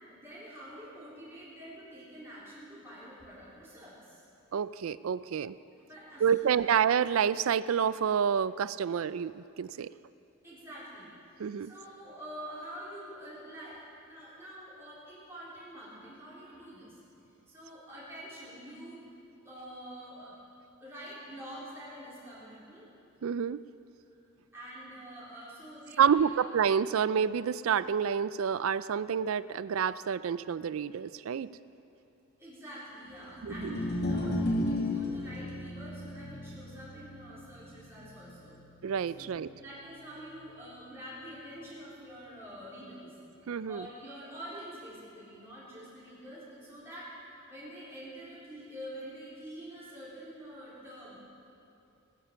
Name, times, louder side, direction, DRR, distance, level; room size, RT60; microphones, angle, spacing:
voice 1, 0.1-4.2 5.8-6.6 10.4-11.1 11.6-17.0 17.5-19.0 19.4-20.4 20.8-22.9 24.5-26.4 32.4-38.6 39.1-43.1 43.6-47.1 47.5-51.2, equal, 10° right, -9 dB, 4.1 m, -46 dB
voice 2, 4.5-5.6 6.2-9.9 11.4-11.7 23.2-23.6 26.0-31.5 33.4-33.8 38.8-39.5 43.5-43.9, right 7 dB, 75° right, 16 dB, 0.4 m, -28 dB
sound 1, 33.4-39.7, left 1 dB, 50° left, 1.9 m, -35 dB
20.0 x 10.0 x 7.0 m, 2.7 s
head